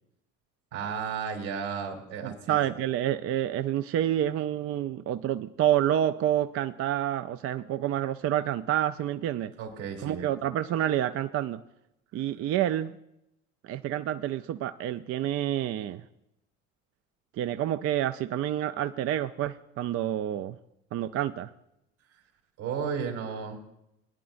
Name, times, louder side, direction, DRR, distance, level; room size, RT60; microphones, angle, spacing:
voice 1, 0.7-2.6 9.6-10.3 22.6-23.6, right 6 dB, 70° right, 2 dB, 2.9 m, -33 dB
voice 2, 2.2-9.5 10.0-11.6 12.1-12.9 13.6-16.0 17.4-20.6 20.9-21.5, right 11 dB, 40° right, 10 dB, 0.4 m, -28 dB
21.0 x 10.0 x 2.5 m, 0.82 s
hypercardioid pair, 70°, 38 cm